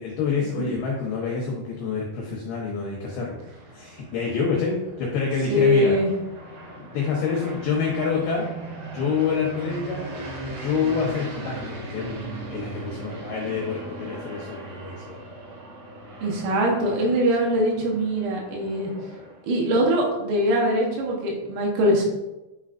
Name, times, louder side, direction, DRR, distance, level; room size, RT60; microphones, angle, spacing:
voice 1, 0.0-3.4 3.7-6.0 6.9-8.5 8.9-10.1 10.5-15.2, left 5 dB, 85° left, -2 dB, 2.2 m, -27 dB
sound 1, 2.5-19.6, right 2 dB, 55° right, 2.3 m, -39 dB
voice 2, 5.5-6.1 16.2-18.9 19.4-22.1, equal, 80° right, -1 dB, 3.6 m, -22 dB
10.0 x 4.1 x 2.5 m, 1.0 s
omnidirectional pair, 5.9 m